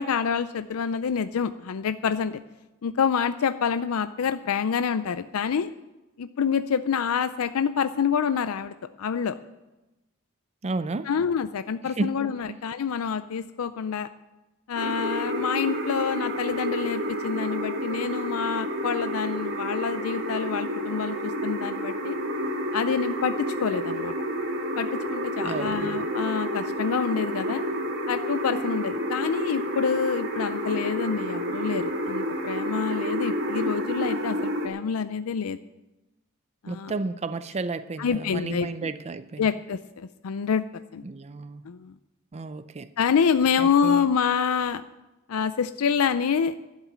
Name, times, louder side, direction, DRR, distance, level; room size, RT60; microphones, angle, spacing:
voice 1, 0.0-2.4 2.8-5.7 6.2-9.4 11.1-14.1 14.7-22.2 22.7-24.1 24.8-27.6 28.1-35.6 36.6-36.9 38.0-38.9 39.4-40.6 40.9-41.0 41.6-41.9 43.0-44.8 45.3-46.6, left 6 dB, 75° left, 12 dB, 0.4 m, -27 dB
voice 2, 10.6-11.1 11.8-12.2 12.5-12.6 25.4-26.0 36.7-39.5 41.0-41.6 42.3-42.9 43.6-44.1, right 3 dB, 30° right, 12 dB, 0.4 m, -32 dB
sound 1, 14.8-34.7, equal, 60° right, 1.7 m, -30 dB
12.0 x 7.3 x 9.2 m, 1.0 s
head